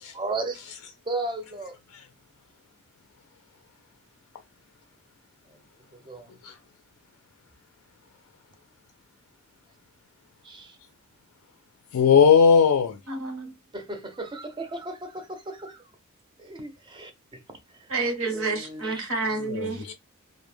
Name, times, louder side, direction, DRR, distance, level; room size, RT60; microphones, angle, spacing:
voice 1, 0.1-0.6 1.1-1.8 5.5-5.6 5.9-6.4 10.4-10.8 13.7-15.9 16.4-17.4 17.7-17.9 18.2-19.1, right 2 dB, 20° right, 0.4 m, -35 dB
voice 2, 11.9-13.0 19.4-19.9, left 6 dB, 85° left, 0.3 m, -18 dB
voice 3, 13.1-13.5 17.9-19.8, right 3 dB, 70° right, 0.9 m, -29 dB
2.1 x 2.1 x 3.1 m
head